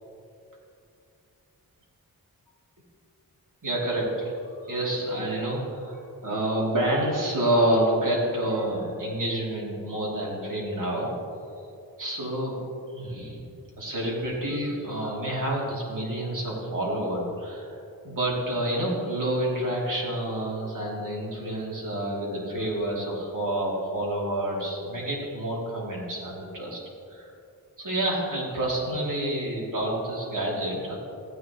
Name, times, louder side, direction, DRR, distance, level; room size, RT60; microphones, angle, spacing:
voice 1, 3.6-11.1 12.0-12.6 12.9-13.4 13.8-17.8 18.0-26.8 27.1-27.3 27.8-31.0, right 1 dB, 60° right, -4 dB, 3.0 m, -28 dB
15.0 x 10.0 x 3.1 m, 2.6 s
wide cardioid pair, 80°, 36 cm